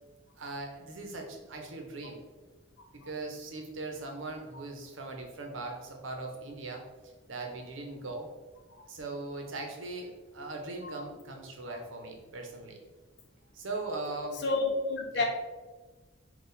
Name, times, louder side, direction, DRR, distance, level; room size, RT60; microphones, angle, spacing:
voice 1, 0.4-2.2 2.9-6.8 7.3-8.3 8.9-12.8 13.5-14.4 15.1-15.2, right 2 dB, 80° right, 2 dB, 0.8 m, -39 dB
voice 2, 14.4-15.2, left 3 dB, 60° left, 2 dB, 0.7 m, -29 dB
4.0 x 2.4 x 3.9 m, 1.2 s
head